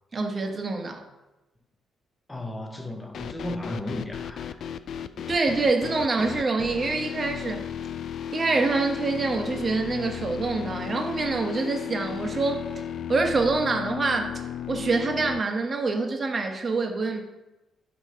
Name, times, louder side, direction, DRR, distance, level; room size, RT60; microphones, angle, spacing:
voice 1, 0.1-1.0 5.3-7.6 8.3-12.8 13.1-14.3 14.7-17.2, right 3 dB, 35° right, 1.1 m, -26 dB
voice 2, 2.3-4.6, left 1 dB, 15° left, 1.0 m, -34 dB
sound 1, 3.1-15.4, left 9 dB, 60° left, 0.3 m, -35 dB
8.3 x 3.0 x 5.6 m
cardioid pair, 90°, 0 cm